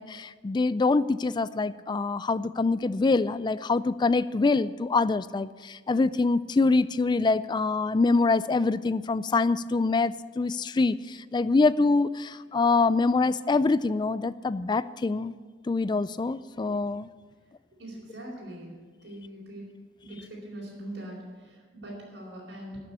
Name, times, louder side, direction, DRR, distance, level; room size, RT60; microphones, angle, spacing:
voice 1, 0.0-15.4 15.7-17.1, left 3 dB, 25° left, 16 dB, 0.3 m, -25 dB
voice 2, 17.8-18.7 19.0-19.6 20.0-22.8, right 1 dB, 80° right, -6 dB, 4.0 m, -41 dB
13.0 x 6.9 x 8.3 m, 1.5 s
head